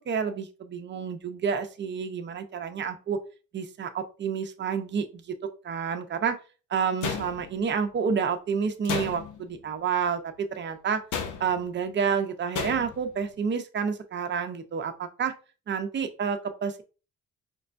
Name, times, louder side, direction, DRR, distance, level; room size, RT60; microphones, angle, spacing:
voice 1, 0.1-3.2 3.5-5.2 5.6-6.4 6.7-11.0 11.4-15.3 15.7-16.8, right 6 dB, 40° right, 6 dB, 0.6 m, -29 dB
sound 1, 7.0-7.7 8.9-9.5 11.1-11.7 12.6-13.1, left 6 dB, 75° left, 0.7 m, -33 dB
5.2 x 2.1 x 2.5 m, 0.34 s
cardioid pair, 90°, 30 cm